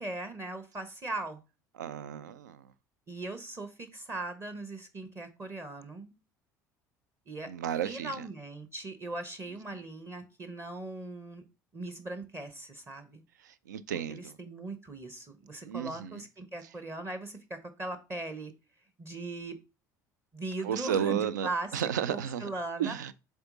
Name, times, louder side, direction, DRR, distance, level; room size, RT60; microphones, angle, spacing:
voice 1, 0.0-1.4 3.1-6.1 7.3-7.5 7.8-11.4 11.7-13.2 14.1-18.5 19.0-19.6 20.3-23.0, right 2 dB, 25° right, 1.2 m, -39 dB
voice 2, 1.8-2.6 7.5-8.2 9.7-9.8 13.4-14.3 15.6-16.2 20.6-22.5 22.8-23.1, right 9 dB, 75° right, 0.4 m, -33 dB
7.7 x 3.6 x 3.9 m
figure-of-eight pair, 65°, 10 cm